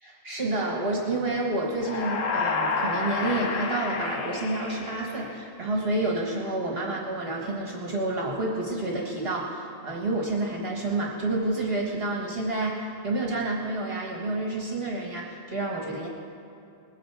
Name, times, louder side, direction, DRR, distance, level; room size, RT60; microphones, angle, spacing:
voice 1, 0.0-16.1, right 2 dB, 50° right, -1 dB, 1.7 m, -29 dB
sound 1, 1.7-5.6, left 4 dB, 85° left, 1.3 m, -30 dB
20.0 x 9.2 x 4.7 m, 2.8 s
omnidirectional pair, 1.3 m